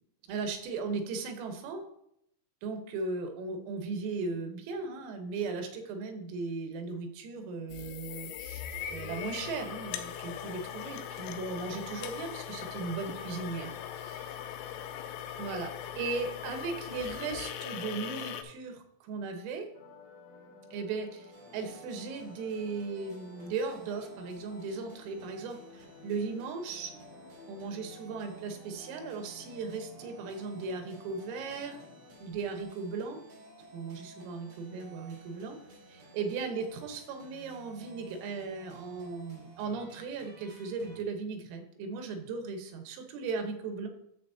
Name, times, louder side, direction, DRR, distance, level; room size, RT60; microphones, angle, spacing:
voice 1, 0.3-1.8 2.6-8.6 8.9-14.4 15.4-15.7 16.0-19.7 20.7-27.0 27.5-31.8 32.2-33.2 33.7-35.6 35.9-43.9, right 4 dB, 85° right, 5 dB, 3.8 m, -37 dB
sound 1, 7.7-18.4, left 9 dB, 90° left, 3.3 m, -40 dB
sound 2, 19.7-32.6, left 4 dB, 65° left, 1.7 m, -55 dB
sound 3, 21.3-41.0, right 2 dB, 60° right, 4.7 m, -54 dB
10.5 x 7.7 x 2.8 m, 0.75 s
omnidirectional pair, 5.8 m